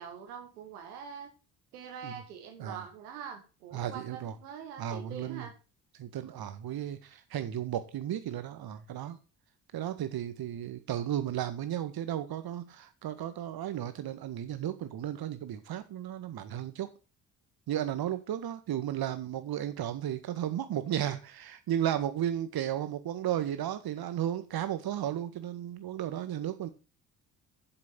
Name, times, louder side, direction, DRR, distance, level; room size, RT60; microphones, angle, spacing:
voice 1, 0.0-1.3 1.7-5.5, right 7 dB, 75° right, 1.9 m, -44 dB
voice 2, 3.7-4.3 4.8-5.5 6.0-9.2 9.7-16.9 17.7-26.7, right 11 dB, 50° right, 1.8 m, -34 dB
7.8 x 6.8 x 8.0 m
figure-of-eight pair, 45°, 46 cm